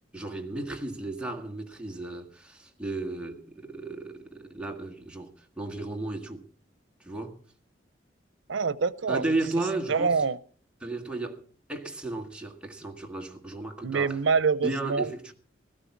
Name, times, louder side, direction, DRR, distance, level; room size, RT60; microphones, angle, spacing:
voice 1, 0.1-6.4 7.0-7.4 9.1-10.2 10.8-11.4 11.7-14.2 14.6-15.3, right 2 dB, 5° right, 1.7 m, -34 dB
voice 2, 8.5-9.2 9.9-10.4 13.8-15.1, right 5 dB, 85° right, 0.7 m, -25 dB
16.5 x 13.5 x 4.7 m
head